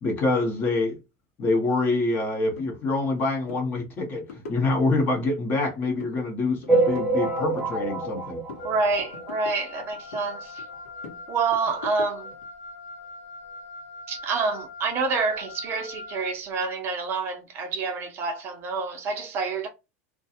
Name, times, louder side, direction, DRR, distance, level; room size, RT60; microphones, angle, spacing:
voice 1, 0.0-1.0 1.4-8.4, left 2 dB, 25° left, 0.8 m, -26 dB
sound 1, 2.6-2.7 3.0-3.2 3.5-3.6 4.0-5.2 5.6-6.2 6.5-8.2 8.5-10.3 10.6-12.4, left 4 dB, 85° left, 1.1 m, -43 dB
sound 2, 6.7-9.5 10.0-10.1 10.3-10.4 10.7-10.8 11.7-11.8 12.3-12.4, right 2 dB, 5° right, 0.9 m, -26 dB
Wind instrument woodwind instrument, 8.6-16.4, left 3 dB, 60° left, 0.8 m, -42 dB
voice 2, 8.6-10.6 11.3-12.3 14.1-19.7, right 4 dB, 30° right, 0.5 m, -27 dB
2.4 x 2.2 x 2.7 m
supercardioid pair, 160°, 8 cm